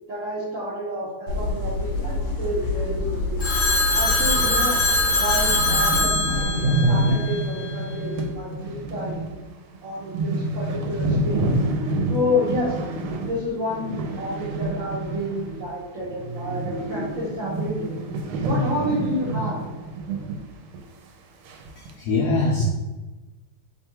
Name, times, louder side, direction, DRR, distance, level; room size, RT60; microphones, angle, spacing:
voice 1, 0.1-3.5 3.9-4.8 5.1-9.2 9.8-11.4 12.1-12.7 13.3-18.0 18.4-19.6, left 1 dB, 60° right, -7 dB, 0.8 m, -29 dB
sound 1, 1.3-6.4, left 2 dB, 60° left, 1.0 m, -27 dB
Telephone, 3.4-7.6, left 2 dB, 35° left, 0.8 m, -22 dB
sound 2, 4.8-4.9 5.2-5.3 5.5-15.7 16.0-20.5 20.7-20.8 21.5-21.9, right 2 dB, 80° right, 1.4 m, -27 dB
voice 2, 21.8-22.6, left 3 dB, 85° left, -1 dB, 0.9 m, -23 dB
3.3 x 2.3 x 4.4 m, 1.2 s
omnidirectional pair, 2.3 m